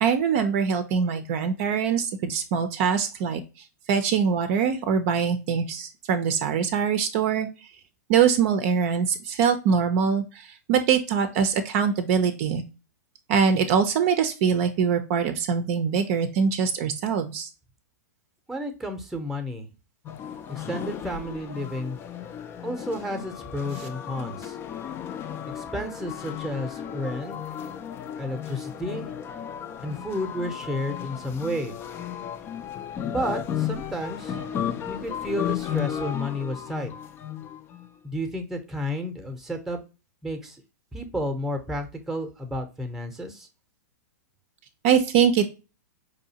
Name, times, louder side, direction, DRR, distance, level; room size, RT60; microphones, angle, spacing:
voice 1, 0.0-3.4 3.9-7.5 8.1-12.6 13.3-17.5 44.8-45.4, right 7 dB, 45° right, 9 dB, 0.6 m, -23 dB
voice 2, 18.5-19.7 20.5-22.0 22.6-24.6 25.5-27.4 28.2-29.1 29.8-31.8 33.0-34.4 34.9-36.9 38.0-39.8 40.2-40.6 40.9-43.5, equal, 5° right, 6 dB, 0.8 m, -31 dB
sound 1, 20.1-37.9, left 9 dB, 25° left, 0.4 m, -34 dB
4.7 x 2.7 x 2.7 m, 0.30 s
hypercardioid pair, 115°, 10 cm